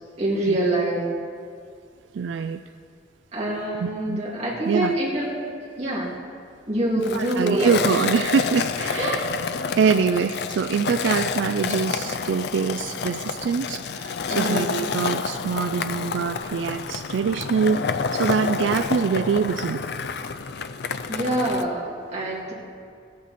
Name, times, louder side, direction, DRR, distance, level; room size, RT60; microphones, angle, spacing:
voice 1, 0.2-1.0 3.3-5.3 5.6-6.2 6.7-7.8 8.9-9.2 14.3-14.8 21.1-22.5, right 1 dB, 35° right, -5 dB, 2.5 m, -25 dB
voice 2, 2.1-2.6 3.8-4.2 4.7-4.9 7.1-9.3 9.8-19.8, right 6 dB, 75° right, 9 dB, 0.3 m, -24 dB
Skateboard, 7.0-21.6, left 5 dB, 60° left, 0.4 m, -29 dB
16.0 x 8.6 x 4.2 m, 2.3 s
head